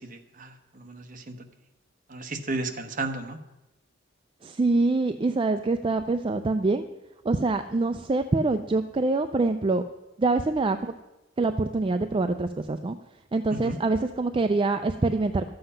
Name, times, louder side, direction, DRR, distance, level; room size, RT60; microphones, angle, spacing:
voice 1, 0.0-1.3 2.1-3.4 13.5-13.8, right 2 dB, 45° right, 6 dB, 1.0 m, -34 dB
voice 2, 4.4-6.8 7.2-9.8 10.2-10.9 11.4-13.0 13.3-15.5, right 3 dB, 25° right, 8 dB, 0.4 m, -25 dB
12.5 x 7.8 x 5.6 m, 1.0 s
head